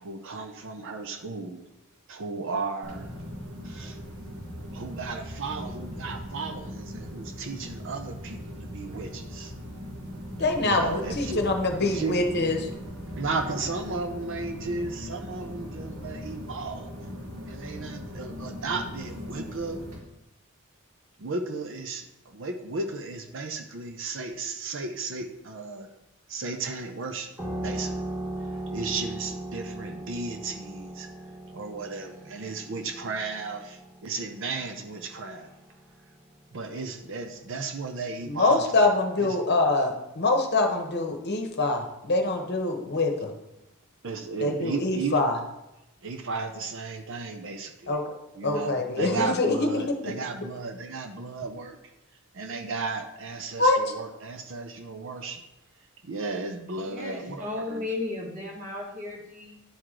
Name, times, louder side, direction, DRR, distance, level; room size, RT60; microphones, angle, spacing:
voice 1, 0.0-1.6 2.1-3.1 3.6-4.0 4.7-9.5 10.6-11.4 11.8-12.2 13.1-16.9 17.5-19.8 21.2-25.9 26.3-27.3 27.6-27.9 28.4-31.1 31.5-35.5 36.5-39.4 44.0-45.2 46.0-48.0 48.3-51.8 52.3-55.4 56.0-57.8, right 3 dB, 60° right, 6 dB, 0.6 m, -34 dB
sound 1, 2.8-20.0, equal, 90° right, 1.7 m, -39 dB
voice 2, 10.4-12.6 38.3-43.3 44.4-45.3 47.9-48.0 48.4-49.6 53.6-53.8, left 2 dB, 50° left, 4 dB, 1.0 m, -24 dB
sound 2, 27.4-36.6, right 1 dB, 10° right, 1.5 m, -38 dB
voice 3, 56.8-59.6, left 2 dB, 35° right, -1 dB, 1.6 m, -35 dB
10.5 x 4.7 x 3.7 m, 0.92 s
head